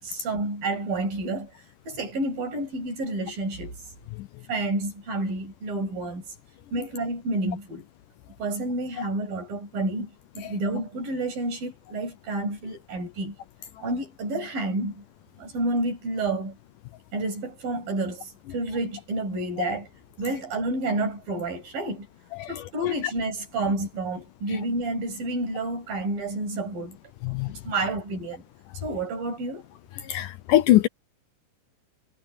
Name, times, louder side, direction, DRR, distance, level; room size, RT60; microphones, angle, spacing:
voice 1, 0.0-3.8 4.5-6.2 6.7-7.9 8.4-13.4 13.8-15.0 15.4-16.6 17.1-19.9 20.2-22.1 22.5-27.0 27.6-28.4 28.8-29.7, right 2 dB, 80° right, 9.0 m, -30 dB
voice 2, 30.1-30.9, left 14 dB, 75° left, 2.1 m, -20 dB
omnidirectional pair, 4.0 m